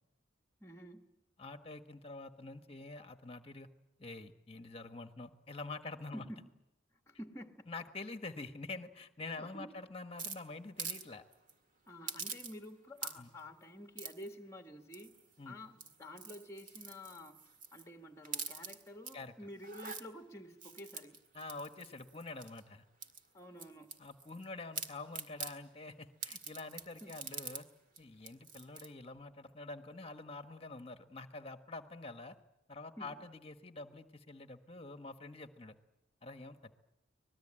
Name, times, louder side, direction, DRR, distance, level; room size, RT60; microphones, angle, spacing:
voice 1, 0.6-1.1 6.1-6.4 7.1-7.7 9.4-9.7 11.9-15.1 15.4-17.4 17.7-21.2 23.3-23.9 27.0-27.1 33.0-33.2, left 1 dB, 15° left, 1.6 m, -50 dB
voice 2, 1.4-3.7 4.0-6.2 7.7-11.2 13.2-13.3 15.4-15.6 19.1-19.3 21.3-22.8 24.0-27.7 28.0-32.3 32.7-35.8 36.2-36.7, left 3 dB, 30° left, 1.4 m, -47 dB
sound 1, 10.2-11.0 11.3-11.5 12.1-12.7 13.0-13.4 14.0-14.3 14.9-15.3 15.7-17.9 18.2-19.1 19.6-20.0 20.6-22.6 23.0-24.4 24.7-25.5 26.2-27.6 28.0-28.1 28.2-28.9, right 5 dB, 40° right, 1.9 m, -44 dB
25.0 x 20.0 x 8.8 m
head